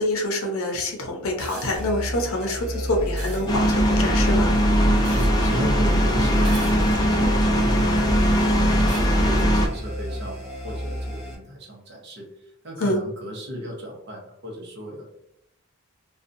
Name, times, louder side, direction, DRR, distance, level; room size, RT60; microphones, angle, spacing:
voice 1, 0.0-4.5 12.8-13.0, left 1 dB, 75° left, 2 dB, 0.6 m, -26 dB
sound 1, 1.4-1.9 3.2-3.5 5.0-5.7 6.4-7.2 7.8-7.9 8.9-9.1 10.5-10.6, right 3 dB, 80° right, 0.8 m, -40 dB
sound 2, 1.7-11.3, equal, ahead, 0.9 m, -30 dB
sound 3, 3.5-9.7, equal, 20° left, 0.3 m, -20 dB
voice 2, 5.1-15.1, equal, 50° right, -1 dB, 0.7 m, -35 dB
2.6 x 2.2 x 2.5 m, 0.79 s
head